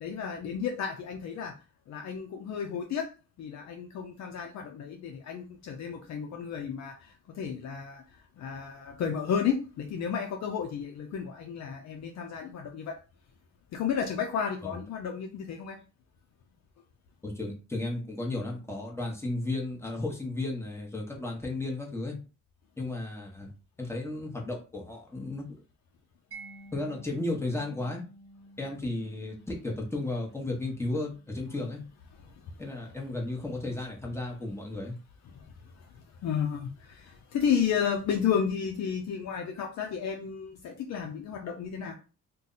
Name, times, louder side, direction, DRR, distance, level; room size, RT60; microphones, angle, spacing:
voice 1, 0.0-1.5 1.9-3.1 3.4-8.0 8.4-13.0 13.7-15.8 35.3-35.4 36.2-41.9, left 7 dB, 65° left, 0.6 m, -32 dB
voice 2, 17.2-22.2 22.8-23.5 23.8-25.5 26.7-28.0 28.6-31.8 32.6-34.9, left 2 dB, 10° left, 1.1 m, -34 dB
Mallet percussion, 26.3-33.1, right 2 dB, 45° right, 0.8 m, -52 dB
2.6 x 2.2 x 3.9 m
cardioid pair, 90°, 30 cm